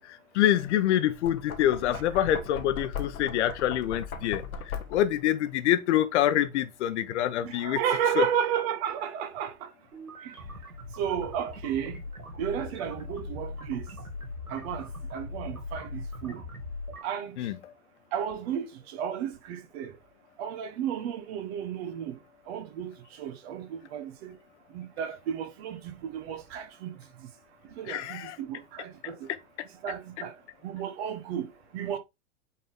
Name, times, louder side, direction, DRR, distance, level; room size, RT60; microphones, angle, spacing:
voice 1, 0.3-4.4 4.9-7.8 8.2-8.3 17.4-17.6 27.9-28.4, left 12 dB, 55° left, 1.2 m, -26 dB
Knock, 1.1-5.2, left 6 dB, 75° left, 1.3 m, -38 dB
voice 2, 7.4-9.7 10.2-10.3 11.0-12.0 12.4-13.9 14.5-16.4 17.0-17.4 18.1-19.9 20.4-22.2 22.5-22.9 23.2-24.3 24.7-27.3 27.8-29.3 29.8-30.3 30.6-32.0, right 9 dB, 45° right, 1.5 m, -33 dB
sound 1, 9.9-17.0, left 2 dB, 85° right, 2.8 m, -40 dB
8.4 x 4.0 x 3.7 m
figure-of-eight pair, 100°, 42 cm